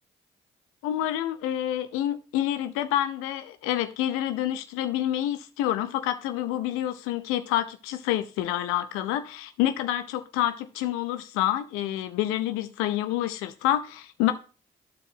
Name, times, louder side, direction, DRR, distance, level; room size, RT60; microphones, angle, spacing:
voice 1, 0.8-14.3, left 12 dB, 85° left, 0.5 m, -28 dB
13.5 x 4.5 x 2.7 m
hypercardioid pair, 45°, 21 cm